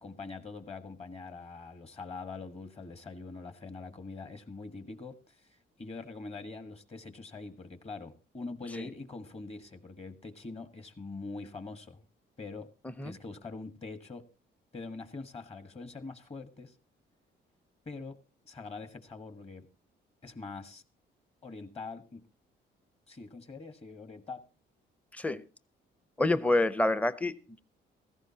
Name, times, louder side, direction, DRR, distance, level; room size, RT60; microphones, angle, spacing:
voice 1, 0.0-5.4 5.8-12.0 12.4-12.7 13.0-14.2 14.7-16.7 17.8-18.2 18.4-19.7 20.2-20.8 21.4-22.2 23.1-24.4, left 3 dB, 30° left, 1.5 m, -43 dB
voice 2, 26.2-27.6, left 2 dB, 5° left, 0.6 m, -27 dB
16.5 x 14.5 x 2.8 m
cardioid pair, 90°, 20 cm